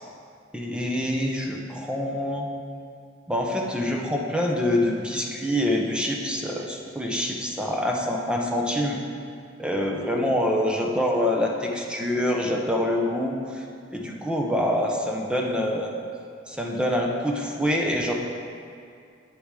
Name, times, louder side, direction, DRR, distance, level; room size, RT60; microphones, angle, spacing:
voice 1, 0.5-2.5 3.3-9.0 9.6-13.6 13.9-15.9 16.5-18.1, left 1 dB, 5° right, 0 dB, 0.7 m, -25 dB
8.9 x 6.9 x 4.8 m, 2.4 s
head